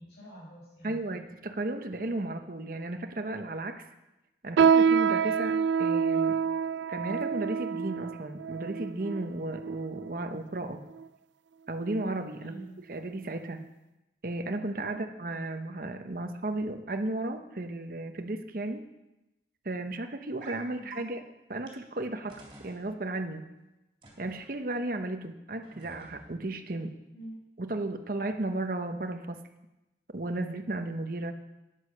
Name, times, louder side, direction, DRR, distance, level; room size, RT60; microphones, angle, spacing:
voice 1, 0.0-1.2 12.4-12.7 14.9-15.1 20.8-21.1 27.1-27.5, right 1 dB, 75° left, -7 dB, 4.9 m, -47 dB
voice 2, 0.8-3.9 4.4-6.4 6.9-10.8 11.7-12.5 12.9-13.6 14.2-18.8 19.6-21.2 21.5-23.5 24.2-26.9 27.6-29.4 30.1-31.3, right 2 dB, 50° right, 7 dB, 0.9 m, -34 dB
sound 1, 4.6-10.2 10.9-11.0 11.8-12.1 12.5-12.6 13.3-13.4, right 6 dB, 85° right, 0.3 m, -27 dB
sound 2, 20.4-20.6 20.9-21.0 21.7-21.8 22.3-22.8 24.0-24.5 25.6-26.3, right 2 dB, 30° right, 3.4 m, -50 dB
10.5 x 9.7 x 6.6 m, 0.97 s
head